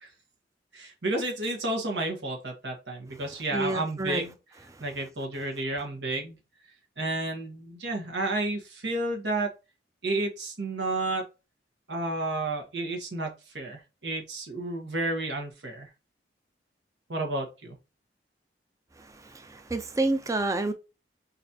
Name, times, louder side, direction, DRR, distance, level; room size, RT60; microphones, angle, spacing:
voice 1, 0.7-4.3 4.8-6.4 7.0-9.5 10.0-11.2 11.9-15.9 17.1-17.8, right 2 dB, 85° right, 1.4 m, -31 dB
voice 2, 3.5-4.2 4.7-4.8 19.0-20.7, right 2 dB, 20° right, 0.4 m, -29 dB
4.2 x 4.1 x 2.8 m
head